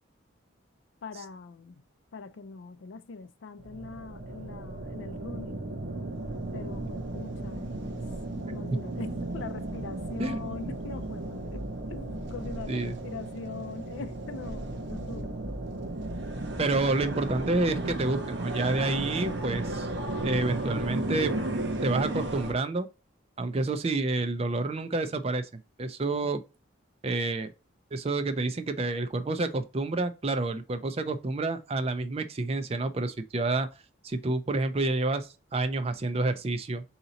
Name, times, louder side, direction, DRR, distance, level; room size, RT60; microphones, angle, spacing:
voice 1, 1.0-1.8 2.1-5.7 6.5-8.0 8.3-11.6 11.9-15.3, left 4 dB, 70° left, 0.4 m, -42 dB
sound 1, 3.6-22.5, right 2 dB, 60° right, 0.7 m, -34 dB
voice 2, 16.6-19.9 20.2-21.3 21.8-22.9 23.4-26.4 27.0-27.5 27.9-33.7 34.0-36.8, right 2 dB, 30° right, 0.4 m, -29 dB
3.9 x 2.8 x 3.9 m
head